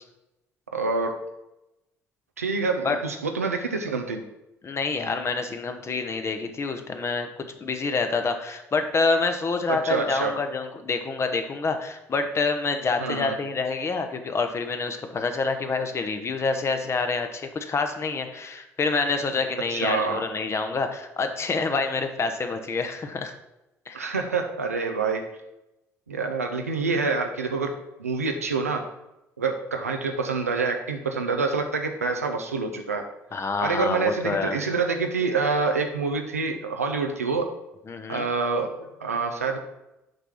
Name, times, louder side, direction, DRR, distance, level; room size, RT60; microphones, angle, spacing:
voice 1, 0.7-1.1 2.4-4.2 9.7-10.3 13.0-13.4 19.7-20.2 23.9-25.2 26.1-27.7 28.0-28.8 29.4-33.0 33.6-37.5 38.1-39.6, right 4 dB, 90° right, 4 dB, 0.7 m, -26 dB
voice 2, 4.6-7.3 7.6-23.3 23.9-24.0 33.3-34.6 37.9-38.3, left 4 dB, 35° left, 6 dB, 1.1 m, -27 dB
6.6 x 4.8 x 5.8 m, 0.91 s
figure-of-eight pair, 50°, 8 cm